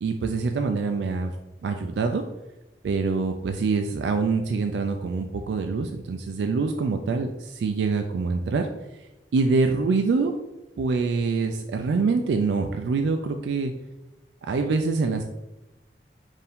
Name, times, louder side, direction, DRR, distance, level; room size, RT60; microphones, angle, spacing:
voice 1, 0.0-1.3 1.6-2.3 2.8-10.3 10.8-13.7 14.4-15.3, right 4 dB, 80° right, 5 dB, 0.3 m, -25 dB
4.3 x 2.6 x 3.5 m, 0.98 s
head